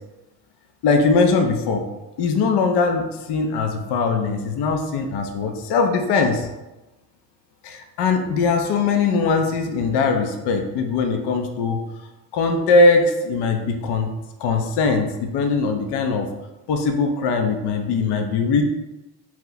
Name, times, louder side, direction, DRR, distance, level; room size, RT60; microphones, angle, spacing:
voice 1, 0.8-1.8 2.2-6.5 7.6-11.8 12.3-14.1 14.4-16.3 16.7-18.6, left 4 dB, 70° left, 5 dB, 0.5 m, -20 dB
2.9 x 2.2 x 3.8 m, 1.0 s
supercardioid pair, 70°, 42 cm